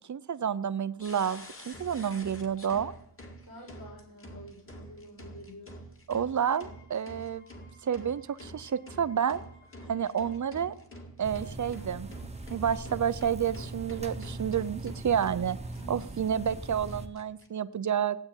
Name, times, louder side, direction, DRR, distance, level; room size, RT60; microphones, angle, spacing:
voice 1, 0.1-2.9 6.1-7.5 7.8-9.4 9.9-10.7 11.2-12.1 12.5-15.6 15.9-18.2, right 8 dB, 45° right, 15 dB, 0.7 m, -30 dB
sound 1, 1.0-16.1 16.5-16.6 16.9-17.5, equal, 30° left, 2.2 m, -48 dB
voice 2, 3.4-5.8 9.8-10.0 15.8-16.1, left 1 dB, 60° left, 0 dB, 6.5 m, -49 dB
Wind instrument woodwind instrument, 6.3-10.8, left 2 dB, 90° left, 7.2 m, -62 dB
sound 2, 11.2-17.1, right 2 dB, 15° right, 1.2 m, -40 dB
16.5 x 8.6 x 9.0 m, 0.70 s
wide cardioid pair, 140°, 41 cm